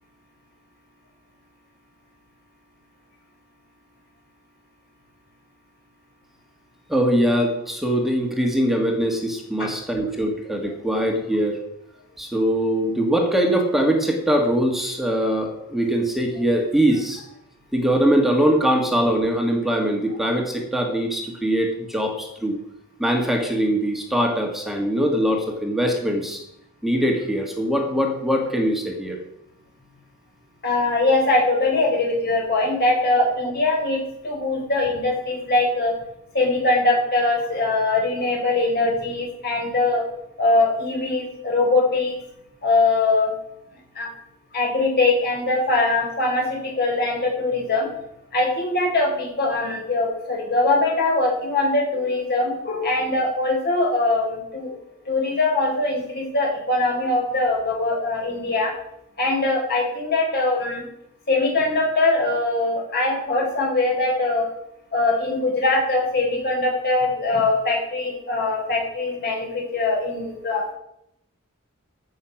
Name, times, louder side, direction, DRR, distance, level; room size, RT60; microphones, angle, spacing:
voice 1, 6.9-11.6 12.2-17.2 17.7-22.6 23.0-26.4 26.8-29.2, equal, ahead, 2 dB, 1.8 m, -22 dB
voice 2, 30.6-35.9 36.3-40.1 40.4-42.1 42.6-43.3 43.9-44.1 44.5-47.9 48.3-54.7 55.1-58.7 59.2-60.8 61.3-64.5 64.9-70.7, left 2 dB, 45° left, -1 dB, 4.6 m, -22 dB
15.5 x 6.6 x 6.0 m, 0.78 s
head